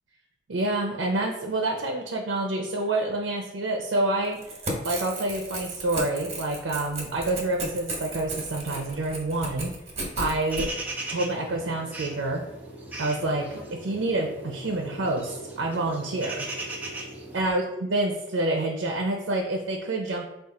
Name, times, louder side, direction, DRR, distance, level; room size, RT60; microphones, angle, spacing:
voice 1, 0.5-4.4 4.8-9.7 10.2-10.7 11.1-12.4 13.0-16.5 17.3-20.3, right 2 dB, 85° right, 1 dB, 0.6 m, -27 dB
Crackle / Tearing, 4.3-10.7, right 2 dB, 35° right, 1.0 m, -35 dB
sound 1, 10.5-17.5, right 2 dB, 10° right, 0.5 m, -38 dB
4.6 x 2.4 x 3.7 m, 0.89 s
head